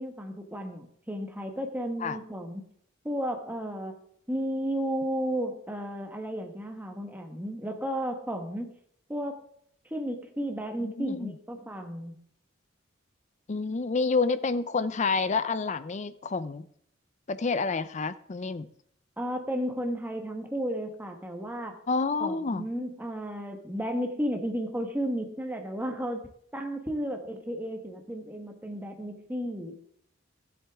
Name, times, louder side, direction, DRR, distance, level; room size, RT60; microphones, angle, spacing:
voice 1, 0.0-2.6 3.0-3.9 4.3-8.7 9.1-9.4 9.9-12.2 19.2-21.8 22.2-26.2 26.5-29.7, equal, 10° right, 4 dB, 1.2 m, -33 dB
voice 2, 10.8-11.3 13.5-16.7 17.3-18.7 21.9-22.7, left 4 dB, 35° left, 15 dB, 0.5 m, -28 dB
14.0 x 7.9 x 3.5 m, 0.65 s
head